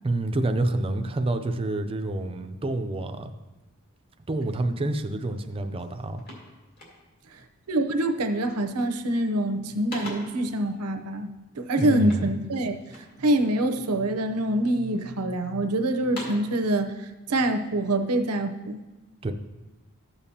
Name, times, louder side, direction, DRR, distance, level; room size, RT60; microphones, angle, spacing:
voice 1, 0.0-3.3 4.3-6.2 11.8-12.2 19.2-19.3, right 2 dB, 25° right, 7 dB, 0.5 m, -28 dB
sound 1, 5.3-5.5 5.8-7.3 8.0-8.3 8.6-9.1 9.5-10.5 12.0-13.2 13.7-14.4 14.9-15.5 15.9-16.6, left 1 dB, 45° left, 2.1 m, -43 dB
voice 2, 7.7-11.3 11.7-12.8 13.2-16.9 17.3-18.8, right 1 dB, 90° right, 7 dB, 0.7 m, -25 dB
13.0 x 7.1 x 2.8 m, 1.1 s
head